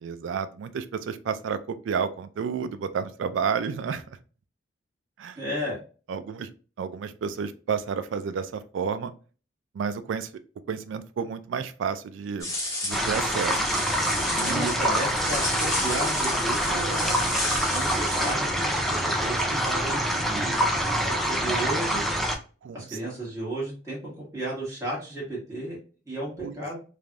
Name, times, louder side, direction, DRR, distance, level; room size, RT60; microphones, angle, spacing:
voice 1, 0.0-4.2 5.2-5.4 6.1-6.5 6.8-9.1 9.7-10.3 10.7-12.5 12.8-13.6 14.4-14.7 21.5-21.6 22.6-23.0 26.4-26.6, right 6 dB, 85° right, 11 dB, 0.3 m, -31 dB
voice 2, 5.3-5.8 14.4-17.2 17.7-20.6 20.9-22.0 22.7-25.8 26.0-26.8, right 1 dB, 15° right, -6 dB, 1.5 m, -33 dB
sound 1, 12.4-18.3, left 1 dB, 20° left, 1.1 m, -32 dB
sound 2, 12.9-22.4, equal, ahead, 0.4 m, -26 dB
3.3 x 2.5 x 2.2 m, 0.37 s
head